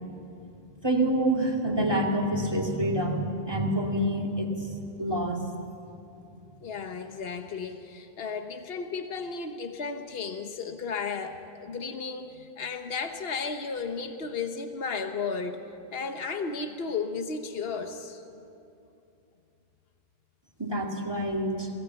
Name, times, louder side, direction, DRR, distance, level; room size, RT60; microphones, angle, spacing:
voice 1, 0.8-5.4 20.6-21.7, right 1 dB, 25° right, 0 dB, 2.5 m, -27 dB
voice 2, 6.6-15.7 15.9-18.2, left 5 dB, 70° left, 6 dB, 1.3 m, -34 dB
27.0 x 17.0 x 7.1 m, 2.7 s
omnidirectional pair, 1.0 m